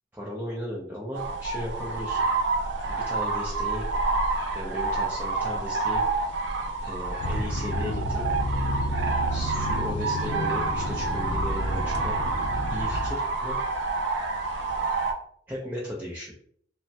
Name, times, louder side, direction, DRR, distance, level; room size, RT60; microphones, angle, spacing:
voice 1, 0.1-2.2 2.9-3.9 4.5-6.0 6.8-8.3 9.3-12.1 12.7-13.6 15.5-16.3, left 1 dB, 10° right, -5 dB, 0.5 m, -36 dB
sound 1, 1.1-15.1, right 3 dB, 65° right, 0.5 m, -28 dB
sound 2, 7.2-13.1, equal, 60° left, 0.4 m, -30 dB
3.3 x 2.1 x 2.7 m, 0.64 s
head